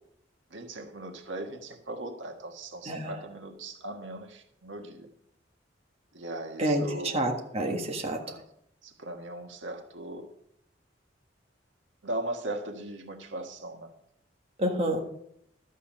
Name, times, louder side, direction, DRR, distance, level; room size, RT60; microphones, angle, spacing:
voice 1, 0.5-5.1 6.1-7.2 8.2-8.5 8.8-10.3 12.0-13.9, right 1 dB, 85° right, 4 dB, 1.5 m, -38 dB
voice 2, 2.9-3.2 6.6-8.2 14.6-15.0, right 1 dB, 35° right, 2 dB, 1.6 m, -28 dB
12.5 x 8.2 x 5.3 m, 0.72 s
head